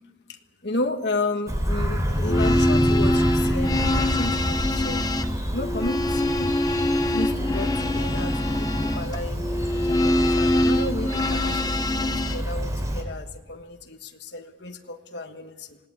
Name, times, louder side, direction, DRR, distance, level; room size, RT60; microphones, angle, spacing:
voice 1, 0.3-5.0 5.5-6.5 7.1-15.8, left 2 dB, 65° left, 4 dB, 1.5 m, -33 dB
Bird vocalization bird call bird song, 1.5-13.0, equal, 20° right, 3.7 m, -27 dB
sound 1, 2.1-12.4, left 1 dB, 20° left, 0.9 m, -24 dB
28.0 x 18.0 x 8.3 m, 1.2 s
head